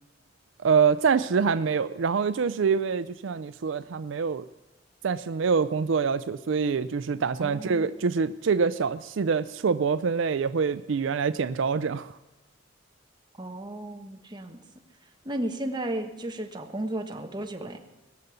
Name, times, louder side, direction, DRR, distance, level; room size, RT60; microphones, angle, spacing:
voice 1, 0.6-4.5 5.0-12.1, right 5 dB, 75° right, 13 dB, 0.4 m, -25 dB
voice 2, 7.4-8.0 13.4-14.6 15.2-17.8, right 1 dB, 25° right, 4 dB, 1.3 m, -34 dB
20.5 x 6.8 x 8.1 m, 1.0 s
head